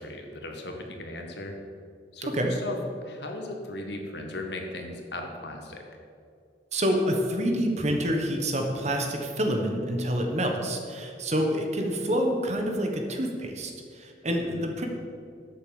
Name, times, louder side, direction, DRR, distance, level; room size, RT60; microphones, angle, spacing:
voice 1, 0.0-1.6 2.1-2.8 3.0-5.9 14.6-14.7, left 1 dB, 65° left, 3 dB, 1.8 m, -37 dB
voice 2, 6.7-14.9, equal, 40° right, 3 dB, 1.4 m, -27 dB
11.0 x 8.5 x 7.2 m, 2.4 s
head